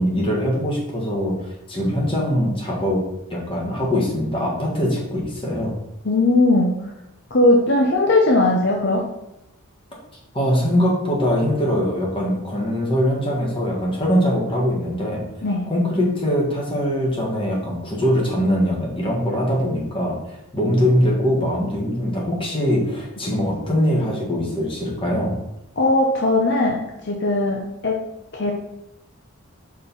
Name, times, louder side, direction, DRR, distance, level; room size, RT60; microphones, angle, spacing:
voice 1, 0.0-3.0 3.3-5.7 10.3-15.2 15.7-25.4, equal, 25° left, -3 dB, 1.6 m, -22 dB
voice 2, 6.0-6.8 7.3-9.0 15.4-15.7 25.8-28.0 28.3-28.5, left 2 dB, 50° left, 0 dB, 0.8 m, -18 dB
5.3 x 4.3 x 5.4 m, 0.86 s
head